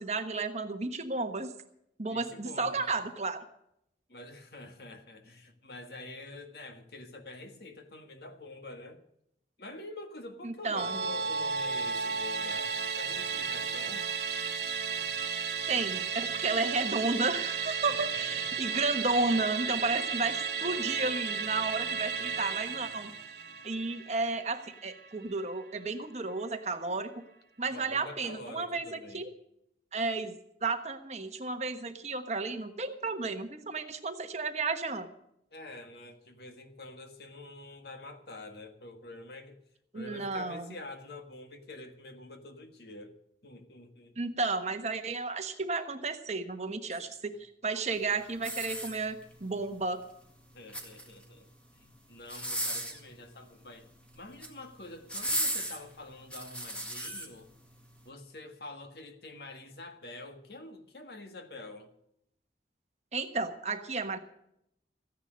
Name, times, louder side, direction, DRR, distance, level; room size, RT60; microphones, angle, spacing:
voice 1, 0.0-1.5 2.0-3.4 10.4-10.9 15.7-23.1 23.6-27.1 27.6-29.3 29.9-30.3 30.6-35.1 39.9-40.7 44.2-50.0 63.1-64.2, right 3 dB, 35° right, 7 dB, 1.3 m, -32 dB
voice 2, 2.0-3.0 4.1-9.0 9.6-14.1 17.8-18.6 27.7-29.2 35.5-39.6 39.9-43.2 43.4-44.2 50.5-51.5 51.7-57.5 58.0-61.9, left 2 dB, 60° left, 6 dB, 1.7 m, -47 dB
Musical instrument, 10.8-25.4 25.8-25.9, right 6 dB, 60° right, 1.5 m, -34 dB
sound 1, 48.4-49.4 50.5-51.3 52.2-53.1 54.1-54.6 55.1-57.3 57.9-58.0, right 1 dB, 5° left, 1.9 m, -35 dB
15.0 x 10.0 x 6.6 m, 0.78 s
head